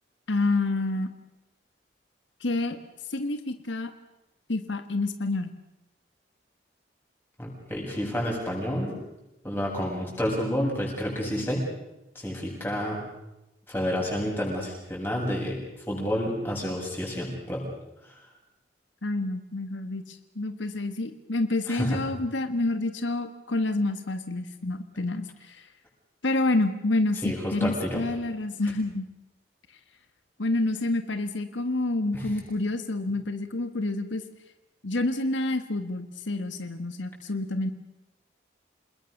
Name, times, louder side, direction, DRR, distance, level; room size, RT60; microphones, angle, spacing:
voice 1, 0.3-1.1 2.4-2.8 3.1-3.9 4.5-5.5 19.0-25.7 26.2-29.0 30.4-34.2 34.8-37.7, left 2 dB, 90° left, 9 dB, 1.6 m, -28 dB
voice 2, 7.4-9.0 9.4-11.7 12.1-13.0 13.7-15.6 15.9-17.6 18.0-18.1 21.7-22.0 27.2-28.0 32.1-32.3, equal, 10° left, -3 dB, 7.9 m, -29 dB
28.5 x 20.5 x 6.7 m, 0.93 s
head